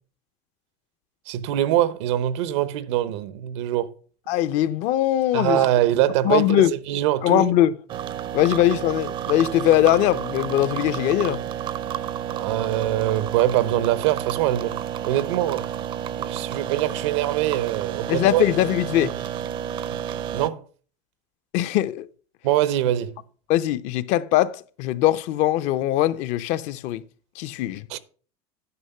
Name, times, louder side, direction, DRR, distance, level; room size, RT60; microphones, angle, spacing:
voice 1, 1.3-3.9 5.3-7.5 12.3-15.7 16.2-18.4 19.9-20.0 20.3-20.6 22.4-23.2 27.9-28.0, right 13 dB, 85° right, 0.8 m, -23 dB
voice 2, 4.3-5.6 6.2-6.7 7.2-7.7 8.3-11.4 18.1-19.1 21.5-22.1 23.5-27.0 27.4-27.8, left 13 dB, 55° left, 0.6 m, -21 dB
sound 1, 7.9-20.5, right 9 dB, 35° right, 0.5 m, -31 dB
9.7 x 5.8 x 5.5 m
supercardioid pair, 145°, 15 cm